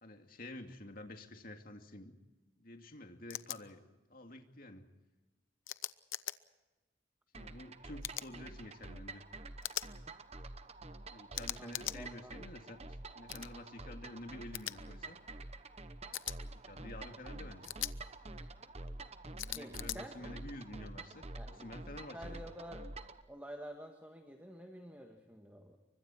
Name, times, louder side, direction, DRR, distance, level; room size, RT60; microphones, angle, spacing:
voice 1, 0.0-2.2 2.6-4.8 7.3-9.2 11.1-15.2 16.5-17.7 19.4-22.4, left 1 dB, 45° left, 4 dB, 2.5 m, -50 dB
sound 1, 3.3-3.6 5.7-6.4 8.0-8.3 9.6-9.9 11.3-12.0 13.3-13.5 14.5-14.7 16.1-16.4 17.6-17.9 19.4-20.0, left 13 dB, 85° left, 0.8 m, -40 dB
sound 2, 7.3-23.2, right 2 dB, 30° right, 1.0 m, -48 dB
voice 2, 11.6-12.3 19.5-20.1 21.4-21.7 22.1-22.9 23.3-25.8, equal, 10° right, 3 dB, 1.7 m, -49 dB
29.0 x 24.5 x 4.5 m, 1.1 s
head